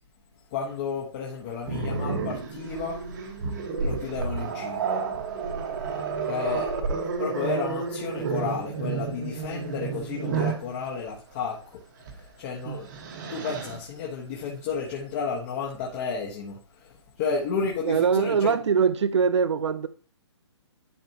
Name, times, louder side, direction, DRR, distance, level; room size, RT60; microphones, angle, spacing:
voice 1, 0.5-3.0 3.8-5.0 5.8-6.7 7.2-11.8 12.1-12.9 13.3-18.6, left 5 dB, 30° left, 1.4 m, -32 dB
Growling, 1.6-10.7 12.0-12.2 12.6-13.8, right 5 dB, 40° right, 1.6 m, -31 dB
voice 2, 17.9-19.9, right 6 dB, 80° right, 0.7 m, -23 dB
11.5 x 5.2 x 3.0 m
hypercardioid pair, 160°, 15 cm